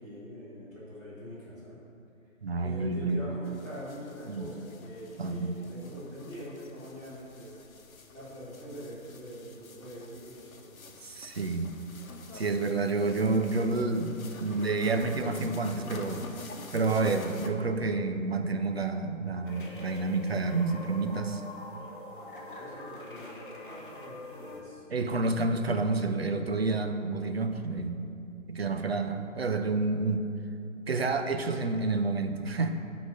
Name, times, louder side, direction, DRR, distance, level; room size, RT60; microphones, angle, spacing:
voice 1, 0.0-1.8 2.6-7.6 8.1-10.9 22.1-24.8, equal, 10° right, -13 dB, 1.5 m, -44 dB
voice 2, 2.4-3.2 4.3-4.5 5.2-5.6 11.0-11.7 12.3-16.2 16.7-21.4 24.9-28.0 28.5-30.3 30.9-32.8, right 3 dB, 50° right, 7 dB, 0.4 m, -29 dB
sound 1, 3.4-17.5, left 3 dB, 85° left, 0.9 m, -47 dB
sound 2, 19.4-24.6, left 2 dB, 40° left, 0.8 m, -44 dB
8.2 x 4.0 x 5.2 m, 2.6 s
hypercardioid pair, 175°, 41 cm